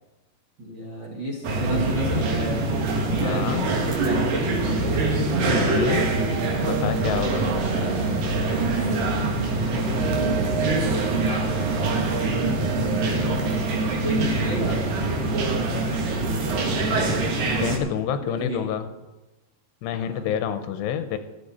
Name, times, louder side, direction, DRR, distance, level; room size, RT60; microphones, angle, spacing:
voice 1, 0.6-2.6 3.1-4.9 7.3-8.8 9.2-9.3 9.6-11.3 12.3-13.7 14.0-14.8 18.2-18.6 19.9-20.3, equal, 40° right, -2 dB, 1.8 m, -32 dB
sound 1, 1.4-17.8, right 2 dB, 60° right, 3.0 m, -24 dB
voice 2, 3.2-3.7 5.5-6.1 6.6-7.5 17.6-18.9 19.8-21.2, left 9 dB, 85° left, 9 dB, 2.8 m, -28 dB
sound 2, 5.9-16.7, right 10 dB, 85° right, 2.0 m, -34 dB
13.5 x 13.0 x 4.3 m, 1.1 s
omnidirectional pair, 5.1 m